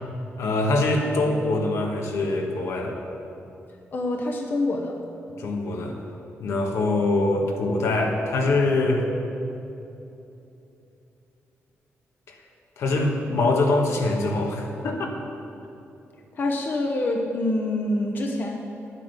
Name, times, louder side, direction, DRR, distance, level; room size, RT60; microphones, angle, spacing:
voice 1, 0.4-3.0 5.4-6.0 6.4-9.0 12.8-15.1, left 2 dB, 80° left, 1 dB, 1.4 m, -23 dB
voice 2, 3.9-5.0 16.4-18.6, left 2 dB, 45° left, 1 dB, 0.9 m, -26 dB
9.7 x 8.5 x 6.7 m, 2.8 s
wide cardioid pair, 150°, 5 cm